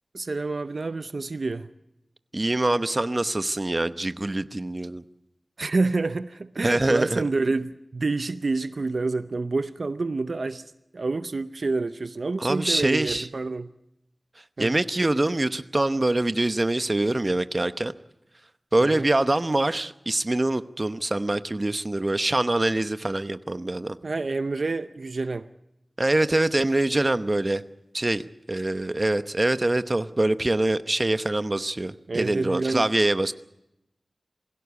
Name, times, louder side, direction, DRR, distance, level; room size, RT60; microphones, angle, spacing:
voice 1, 0.1-1.7 5.6-10.6 10.9-13.7 14.6-14.7 18.8-19.1 24.0-25.5 32.1-32.9, right 3 dB, 70° right, 0.7 m, -28 dB
voice 2, 2.3-5.0 6.6-7.2 12.4-13.3 14.6-17.9 18.7-24.0 26.0-27.6 27.9-33.3, right 2 dB, 35° right, 0.9 m, -24 dB
21.5 x 16.5 x 8.3 m
wide cardioid pair, 55°, 0 cm